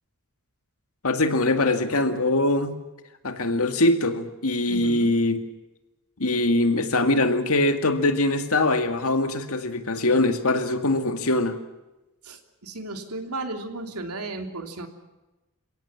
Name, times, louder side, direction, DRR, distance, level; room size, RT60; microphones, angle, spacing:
voice 1, 1.0-2.8 3.2-5.4 6.2-11.6, left 2 dB, 70° left, 2.2 m, -22 dB
voice 2, 4.7-5.1 12.2-14.9, right 2 dB, 90° right, 3.1 m, -34 dB
29.5 x 17.5 x 7.3 m
head